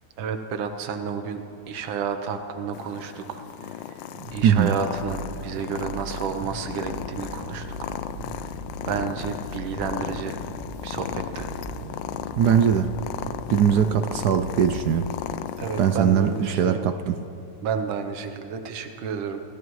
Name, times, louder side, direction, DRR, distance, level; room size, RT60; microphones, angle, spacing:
voice 1, 0.2-3.8 4.3-7.9 8.8-10.4 10.8-11.5 15.6-16.9 17.6-19.4, right 6 dB, 90° right, 7 dB, 1.7 m, -31 dB
Purr, 2.7-16.7, left 10 dB, 80° left, 1.3 m, -36 dB
sound 1, 4.1-15.2, right 2 dB, 55° right, 1.9 m, -39 dB
voice 2, 12.4-12.9 13.5-15.1 15.8-17.2, right 8 dB, 70° right, 9 dB, 1.0 m, -20 dB
27.5 x 15.0 x 3.1 m, 2.8 s
omnidirectional pair, 2.1 m